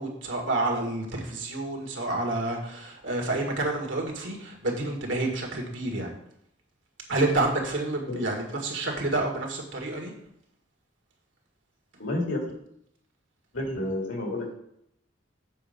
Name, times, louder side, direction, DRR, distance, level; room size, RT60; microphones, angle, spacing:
voice 1, 0.0-6.1 7.1-10.1, right 2 dB, 80° right, 2 dB, 1.8 m, -29 dB
voice 2, 12.0-12.4 13.5-14.5, left 1 dB, 85° left, 0 dB, 2.2 m, -30 dB
7.7 x 5.3 x 5.2 m, 0.73 s
head